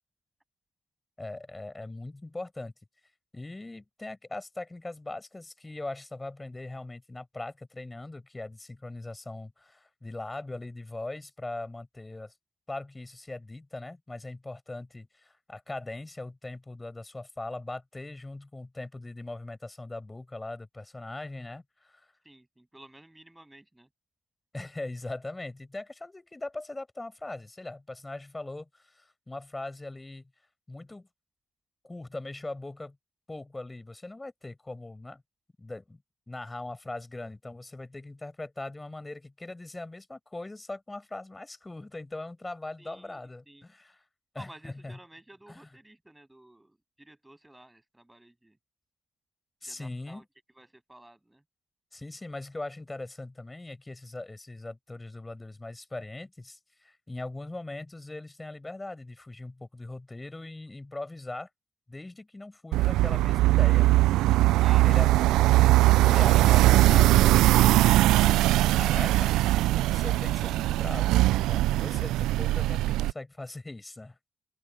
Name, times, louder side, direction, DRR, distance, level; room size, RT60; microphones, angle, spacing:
voice 1, 1.2-2.7 3.3-12.3 12.7-22.1 24.5-30.3 30.7-31.1 31.8-33.0 33.3-35.2 35.6-36.0 36.3-44.0 44.3-45.0 45.5-45.7 49.6-50.2 51.9-61.5 61.9-65.1 66.0-67.1 68.8-74.2, left 2 dB, 15° left, 6.8 m, -40 dB
voice 2, 22.2-23.9 42.8-43.2 43.5-43.6 44.3-48.6 49.7-50.2 50.5-51.4 64.6-65.1, right 1 dB, 10° right, 7.8 m, -51 dB
sound 1, 62.7-73.1, right 17 dB, 85° right, 0.3 m, -21 dB
open air
cardioid pair, 80°, 0 cm